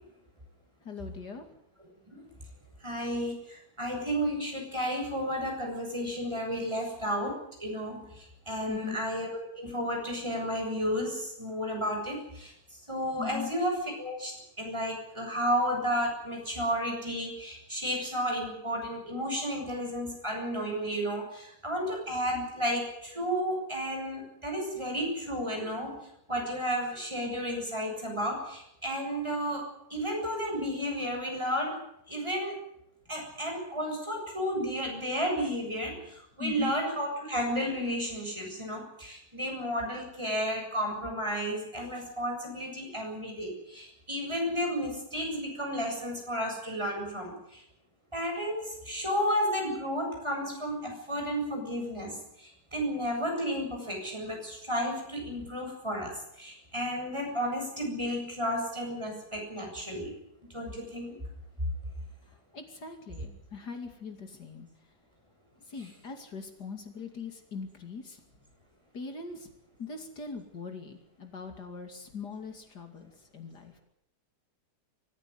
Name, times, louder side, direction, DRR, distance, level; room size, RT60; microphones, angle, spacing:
voice 1, 0.8-1.5 8.7-9.0 13.2-13.5 36.4-36.8 62.5-64.7 65.7-68.2 68.9-69.5 69.8-73.8, left 5 dB, 70° left, 5 dB, 3.1 m, -41 dB
voice 2, 2.8-12.5 12.9-26.0 26.3-29.6 29.9-31.8 32.1-32.6 33.1-47.6 48.1-56.1 56.4-60.1 60.5-61.2, equal, 15° right, 0 dB, 7.7 m, -32 dB
24.5 x 15.0 x 9.6 m, 0.78 s
omnidirectional pair, 1.8 m